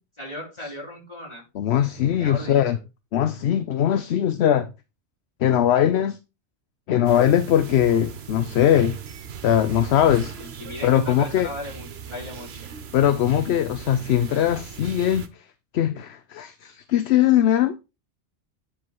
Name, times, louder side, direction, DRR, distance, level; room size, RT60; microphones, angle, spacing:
voice 1, 0.2-1.4 2.1-2.8 10.4-12.7, left 1 dB, 25° left, 4.4 m, -37 dB
voice 2, 1.6-2.8 3.1-4.7 5.4-6.2 6.9-9.0 9.4-10.3 10.8-11.5 12.9-15.3 15.7-17.8, left 10 dB, 70° left, 0.9 m, -20 dB
sound 1, 7.0-15.3, right 7 dB, 60° right, 1.1 m, -39 dB
9.9 x 3.7 x 4.6 m
omnidirectional pair, 1.2 m